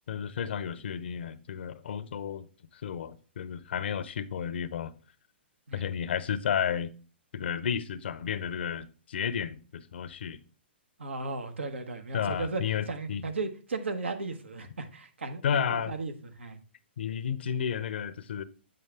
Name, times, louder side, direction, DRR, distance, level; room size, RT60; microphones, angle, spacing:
voice 1, 0.1-2.5 2.7-4.9 5.7-6.9 7.3-10.4 12.1-13.2 15.4-15.9 17.0-18.4, left 8 dB, 65° left, 0.6 m, -32 dB
voice 2, 11.0-16.6, right 3 dB, 85° right, 1.1 m, -36 dB
7.7 x 5.3 x 3.4 m
hypercardioid pair, 125°, 6 cm